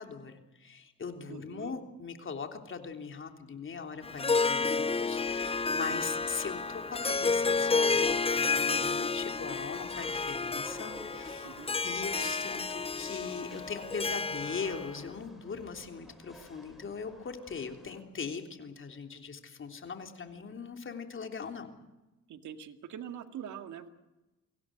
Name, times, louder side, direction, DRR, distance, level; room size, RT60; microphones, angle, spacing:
voice 1, 0.0-11.5 11.8-21.7, left 5 dB, 40° left, 5 dB, 3.4 m, -40 dB
voice 2, 1.3-1.7 5.9-6.0 11.4-11.7 22.3-23.9, right 9 dB, 75° right, 7 dB, 2.1 m, -43 dB
Harp, 4.0-15.0, left 4 dB, 20° left, 0.8 m, -31 dB
sound 1, 5.1-18.0, left 1 dB, ahead, 5.7 m, -53 dB
24.0 x 17.0 x 9.3 m, 1.0 s
cardioid pair, 90°, 30 cm